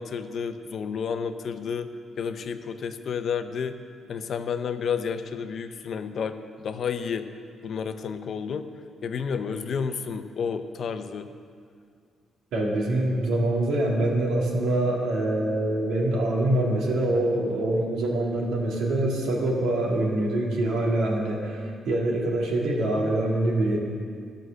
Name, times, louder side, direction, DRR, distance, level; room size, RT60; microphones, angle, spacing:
voice 1, 0.0-1.9 2.2-3.8 4.1-7.3 7.6-8.7 9.0-11.3, left 6 dB, 55° left, 9 dB, 0.6 m, -31 dB
voice 2, 12.5-23.8, right 1 dB, 85° right, -2 dB, 2.2 m, -25 dB
13.0 x 6.4 x 6.4 m, 2.1 s
cardioid pair, 120°, 0 cm